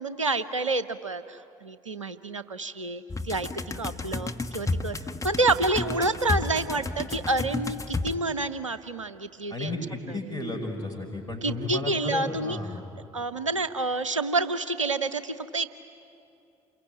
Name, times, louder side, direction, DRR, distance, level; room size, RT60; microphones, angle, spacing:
voice 1, 0.0-5.0 5.2-9.7 10.1-10.2 11.4-12.6 13.1-15.7, right 2 dB, 90° right, 13 dB, 0.7 m, -28 dB
sound 1, 3.1-8.1, left 3 dB, 20° left, 1.4 m, -32 dB
voice 2, 9.5-12.8, left 2 dB, 85° left, -2 dB, 5.2 m, -33 dB
29.0 x 22.0 x 9.2 m, 2.7 s
figure-of-eight pair, 50°, 16 cm